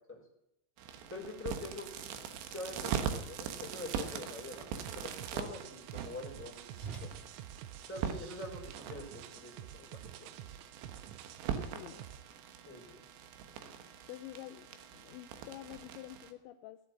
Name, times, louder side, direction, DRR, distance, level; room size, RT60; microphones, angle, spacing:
sound 1, 0.8-16.3, right 8 dB, 70° right, 3.1 m, -42 dB
Whoosh swoosh swish, 0.9-8.6, right 4 dB, 15° right, 2.2 m, -54 dB
voice 1, 1.1-1.9 2.4-7.2 7.9-10.3 12.6-13.0, left 2 dB, 5° left, -2 dB, 3.5 m, -45 dB
sound 2, 4.9-12.2, right 12 dB, 90° right, 3.5 m, -49 dB
voice 2, 14.1-16.8, left 14 dB, 85° left, 7 dB, 2.6 m, -48 dB
17.0 x 7.7 x 9.5 m, 0.85 s
omnidirectional pair, 5.9 m